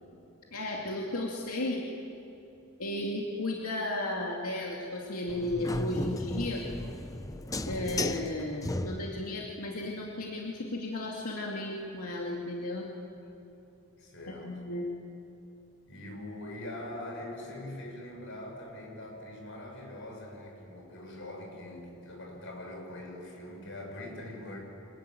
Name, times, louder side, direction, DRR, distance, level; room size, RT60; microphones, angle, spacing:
voice 1, 0.5-1.8 2.8-6.7 7.6-12.9 14.4-14.9, left 1 dB, 90° left, -2 dB, 2.4 m, -34 dB
sound 1, 5.3-9.4, left 2 dB, 15° left, 0.7 m, -35 dB
voice 2, 14.0-14.5 15.9-24.6, left 1 dB, 60° left, 1 dB, 6.2 m, -43 dB
25.0 x 21.5 x 9.2 m, 2.9 s
head